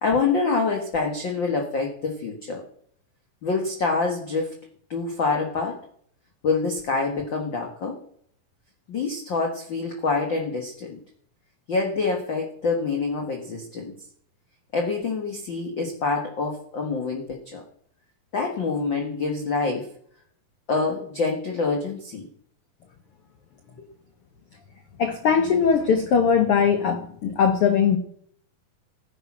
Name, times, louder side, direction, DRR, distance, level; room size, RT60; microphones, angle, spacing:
voice 1, 0.0-2.6 3.4-4.5 4.9-5.8 6.4-8.0 8.9-11.0 11.7-13.9 14.7-17.6 18.3-19.9 20.7-22.3, left 4 dB, 50° left, 2 dB, 1.4 m, -26 dB
voice 2, 25.0-28.0, left 6 dB, 85° left, 7 dB, 1.2 m, -20 dB
13.5 x 10.5 x 6.1 m, 0.65 s
omnidirectional pair, 4.1 m